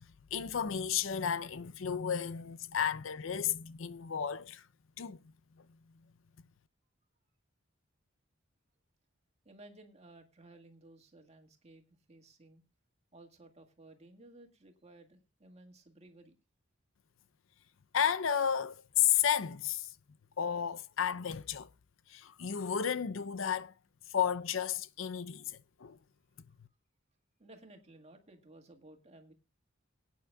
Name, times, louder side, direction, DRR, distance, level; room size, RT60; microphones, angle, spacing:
voice 1, 0.3-4.6 5.0-5.2 17.9-19.9 20.4-21.7 22.1-23.7 24.1-26.0, left 8 dB, 70° left, 0.6 m, -32 dB
voice 2, 9.5-12.6 13.1-16.3 27.4-29.3, right 2 dB, 35° right, 2.0 m, -57 dB
23.0 x 9.2 x 2.3 m
head